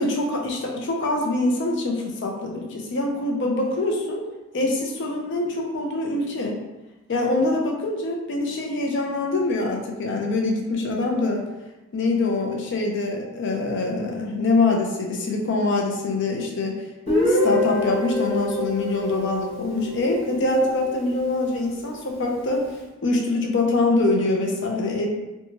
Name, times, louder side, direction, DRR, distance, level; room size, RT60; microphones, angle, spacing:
voice 1, 0.0-4.2 4.5-6.6 7.1-11.4 11.9-16.8 17.3-22.6 23.0-25.1, left 2 dB, 60° left, 1 dB, 0.5 m, -24 dB
Guitar, 17.1-20.9, left 1 dB, 30° left, 0.9 m, -25 dB
2.9 x 2.2 x 2.7 m, 1.0 s
head